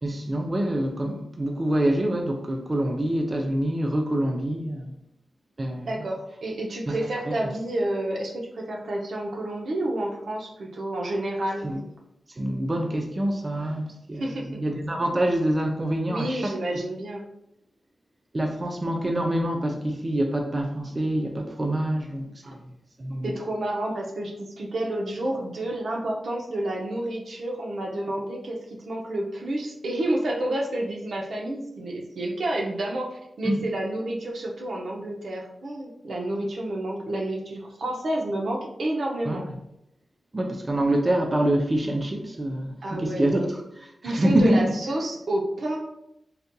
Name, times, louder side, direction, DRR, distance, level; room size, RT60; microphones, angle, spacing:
voice 1, 0.0-4.9 5.6-5.9 6.9-7.0 7.3-7.4 11.6-11.8 12.4-16.5 18.3-22.6 23.0-23.3 33.4-33.6 39.3-39.5 40.3-44.6, right 1 dB, 35° right, 2 dB, 0.4 m, -26 dB
voice 2, 5.9-11.6 14.2-14.6 16.1-17.3 22.4-22.5 23.2-39.5 42.8-43.6 44.0-45.8, right 1 dB, 75° right, 0 dB, 0.6 m, -29 dB
4.0 x 2.6 x 2.2 m, 0.82 s
cardioid pair, 65°, 0 cm